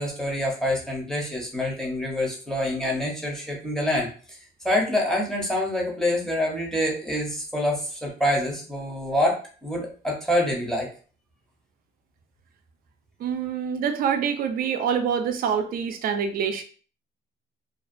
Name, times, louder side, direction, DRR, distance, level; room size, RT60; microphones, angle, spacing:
voice 1, 0.0-4.4 4.6-10.9, left 1 dB, 5° left, -2 dB, 0.6 m, -26 dB
voice 2, 13.2-16.6, right 7 dB, 45° right, 8 dB, 0.4 m, -26 dB
2.5 x 2.2 x 2.5 m, 0.40 s
cardioid pair, 150°, 20 cm